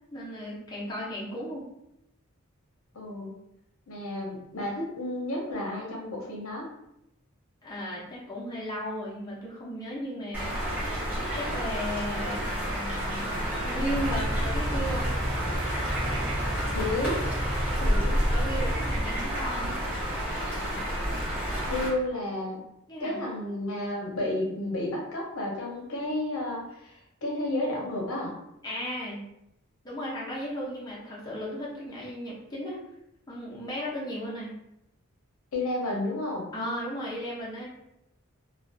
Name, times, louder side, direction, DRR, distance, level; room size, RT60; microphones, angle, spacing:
voice 1, 0.1-1.6 7.6-10.5 11.4-12.4 13.6-15.1 18.3-19.8 22.9-23.2 28.6-29.2 29.8-32.8 33.3-34.5 36.5-37.7, equal, 20° left, -6 dB, 0.5 m, -35 dB
voice 2, 2.9-3.3 3.9-6.7 16.7-17.2 17.8-18.2 21.7-22.6 23.0-28.3 35.5-36.5, left 1 dB, 70° left, -1 dB, 0.6 m, -31 dB
sound 1, 10.3-21.9, equal, 5° right, 0.8 m, -29 dB
Car / Idling, 13.9-19.0, right 1 dB, 65° right, 0.6 m, -33 dB
2.4 x 2.2 x 2.4 m, 0.83 s
head